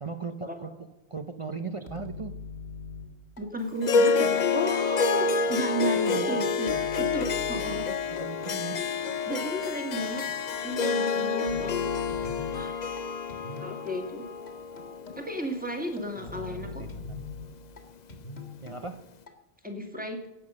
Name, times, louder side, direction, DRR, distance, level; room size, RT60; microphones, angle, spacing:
voice 1, 0.0-2.3 6.1-6.4 7.7-8.8 16.2-17.3 18.6-19.0, right 4 dB, 35° right, 8 dB, 0.7 m, -38 dB
sound 1, 1.9-3.4 4.0-4.4 4.9-5.8 6.4-8.2 8.8-9.2 9.7-10.6 11.2-13.0 13.3-14.0 14.5-15.4 16.0-17.8 18.1-18.8 19.3-19.4, left 4 dB, 85° left, 2.3 m, -42 dB
voice 2, 3.4-6.7 7.0-7.8 9.3-10.2 10.6-11.9 12.5-12.7 13.6-14.2 15.2-16.8 19.6-20.2, right 1 dB, 10° right, 4 dB, 2.1 m, -33 dB
Harp, 3.8-16.4, left 5 dB, 50° left, 0.7 m, -28 dB
17.0 x 8.2 x 6.4 m, 0.96 s
omnidirectional pair, 1.1 m